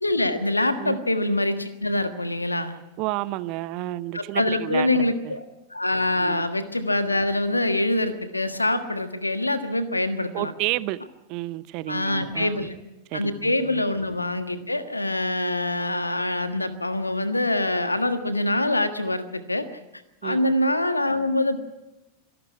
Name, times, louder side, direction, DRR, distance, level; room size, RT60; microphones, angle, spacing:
voice 1, 0.0-2.8 4.1-5.4 5.7-10.5 11.9-12.7 13.1-19.7 20.2-21.6, left 1 dB, 85° left, 1.5 m, -24 dB
voice 2, 3.0-4.9 5.2-5.3 6.2-6.5 10.3-11.0 11.3-12.7 13.1-13.8 20.2-20.5, right 18 dB, 45° right, 0.7 m, -31 dB
25.0 x 12.0 x 9.4 m
figure-of-eight pair, 90°, 0 cm